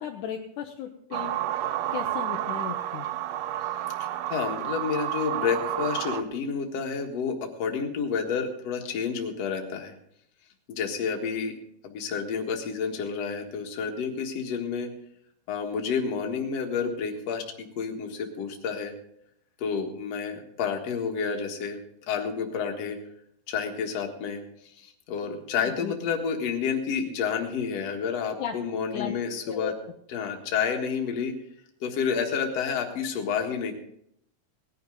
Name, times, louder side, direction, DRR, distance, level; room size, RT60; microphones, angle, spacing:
voice 1, 0.0-3.1 25.5-25.9 28.4-28.5 28.9-29.1 29.5-29.7, left 9 dB, 75° left, 2 dB, 1.9 m, -36 dB
sound 1, 1.1-6.2, right 13 dB, 80° right, 1.9 m, -30 dB
voice 2, 4.3-9.9 10.7-11.5 11.8-14.9 15.5-18.9 19.6-21.8 22.1-23.0 23.5-24.4 24.8-29.7 30.1-31.3 31.8-33.7, left 6 dB, 50° left, 3 dB, 2.2 m, -30 dB
19.0 x 11.0 x 3.9 m, 0.71 s
omnidirectional pair, 4.6 m